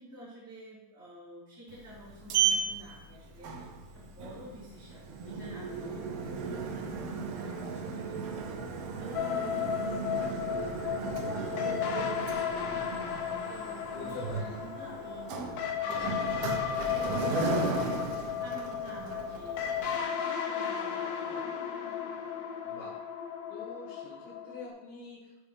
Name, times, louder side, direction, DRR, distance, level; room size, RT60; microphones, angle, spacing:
voice 1, 0.0-3.7 3.9-12.9 13.5-21.6, right 1 dB, 10° right, -12 dB, 2.1 m, -50 dB
Sliding door, 1.7-20.0, right 5 dB, 70° right, 1.6 m, -35 dB
sound 1, 9.1-24.7, left 8 dB, 70° left, 1.6 m, -34 dB
voice 2, 13.9-14.6 22.6-22.9 23.5-25.5, left 3 dB, 85° left, -7 dB, 3.0 m, -45 dB
12.5 x 4.5 x 3.4 m, 1.0 s
omnidirectional pair, 3.5 m